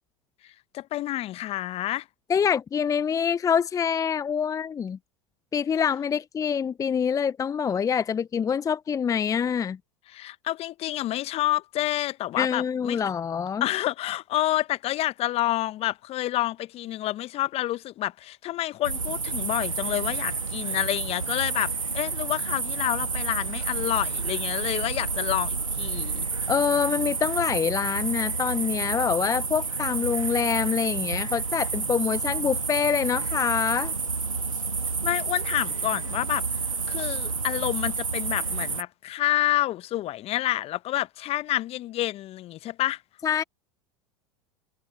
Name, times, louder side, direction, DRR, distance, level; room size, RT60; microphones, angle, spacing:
voice 1, 0.7-2.0 10.1-13.0 13.6-26.3 35.0-36.4 36.9-43.0, left 15 dB, 35° left, 1.2 m, -28 dB
voice 2, 2.3-5.0 5.5-9.8 12.4-13.6 26.5-33.9 43.2-43.4, left 7 dB, 20° left, 0.8 m, -25 dB
sound 1, 18.8-38.8, right 4 dB, 85° right, 1.5 m, -30 dB
figure-of-eight pair, 85°, 17 cm